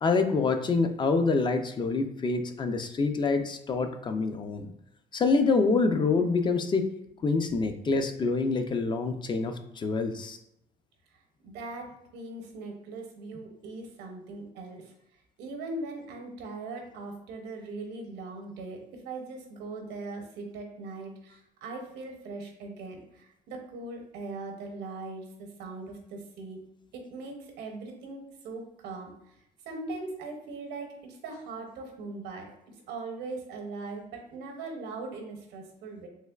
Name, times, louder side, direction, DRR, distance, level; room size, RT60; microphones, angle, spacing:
voice 1, 0.0-4.7 5.1-6.9 7.2-10.4, left 4 dB, 30° left, 7 dB, 0.3 m, -26 dB
voice 2, 11.4-14.9 15.4-26.6 26.9-29.1 29.6-32.5 32.9-36.1, right 3 dB, 85° right, 3 dB, 0.7 m, -40 dB
3.2 x 3.1 x 2.3 m, 0.81 s
cardioid pair, 110°, 17 cm